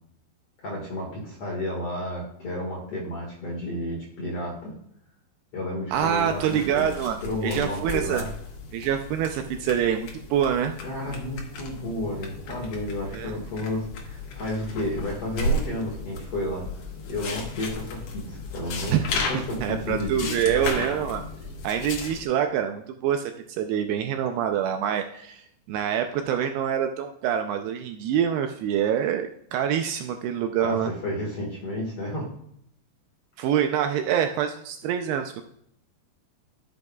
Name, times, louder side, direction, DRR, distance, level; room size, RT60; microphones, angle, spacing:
voice 1, 0.6-4.8 5.5-6.9 7.2-8.3 10.8-20.8 30.6-32.3, left 1 dB, 50° left, -2 dB, 1.8 m, -32 dB
sound 1, 5.9-22.2, left 2 dB, 90° left, 1.4 m, -34 dB
voice 2, 5.9-8.2 8.7-10.7 13.1-13.3 18.9-19.1 19.6-21.2 21.6-30.9 33.4-35.4, right 9 dB, 80° right, 5 dB, 2.4 m, -26 dB
13.5 x 7.7 x 2.3 m, 0.71 s
omnidirectional pair, 5.1 m